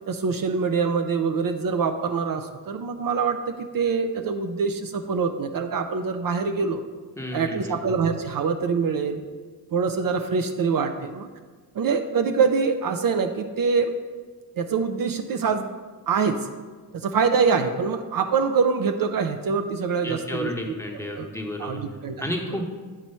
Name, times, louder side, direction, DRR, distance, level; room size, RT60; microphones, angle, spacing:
voice 1, 0.1-6.8 7.3-9.2 9.7-11.3 11.7-13.9 14.6-15.7 16.1-16.4 16.9-20.5 21.2-21.3 21.6-22.1, right 5 dB, 60° right, 7 dB, 0.5 m, -24 dB
voice 2, 7.2-7.8 20.0-21.8 22.2-22.7, left 1 dB, 5° left, 0 dB, 1.0 m, -31 dB
8.8 x 3.0 x 5.4 m, 1.4 s
cardioid pair, 75°, 39 cm